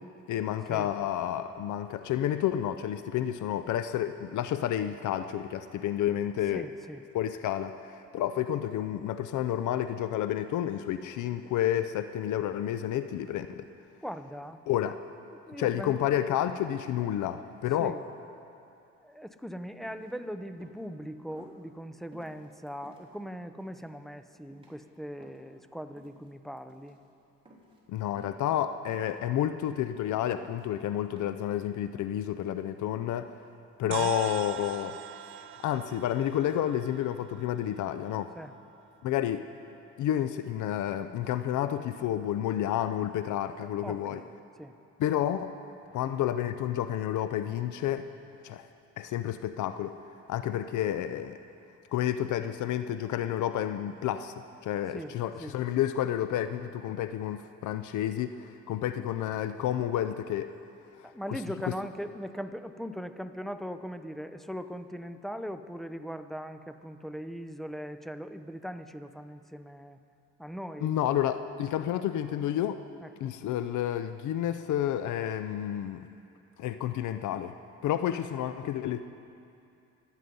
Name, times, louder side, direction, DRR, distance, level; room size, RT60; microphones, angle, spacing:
voice 1, 0.3-6.6 7.1-13.7 14.7-15.0 15.6-17.9 27.9-33.3 33.8-35.0 35.6-38.3 39.0-39.4 40.0-44.2 45.0-45.5 45.9-48.1 48.4-48.7 49.0-49.9 50.3-51.4 51.9-54.3 54.6-60.5 61.0-61.7 70.8-72.8 73.2-76.1 76.6-77.5 77.8-79.0, left 11 dB, 75° left, 11 dB, 0.6 m, -30 dB
voice 2, 6.4-7.0 14.0-14.6 15.3-16.0 17.8-18.1 19.0-27.0 33.8-34.2 38.3-38.5 43.6-44.8 54.9-55.6 61.0-70.0 70.4-71.0 73.0-73.3 78.3-78.8, equal, ahead, 9 dB, 0.7 m, -40 dB
sound 1, 19.8-20.1 20.5-20.9 21.3-21.5 22.1-23.0 23.6-23.9 24.3-24.8 25.2-25.6 26.0-26.3 26.6-27.0 27.5-27.8 28.2-28.5 28.9-29.2 29.6-30.1 30.4-30.7 31.2-31.5, right 2 dB, 15° right, 3.1 m, -55 dB
sound 2, 33.9-38.5, right 9 dB, 45° right, 0.4 m, -41 dB
25.0 x 9.2 x 5.4 m, 2.6 s
cardioid pair, 90°, 30 cm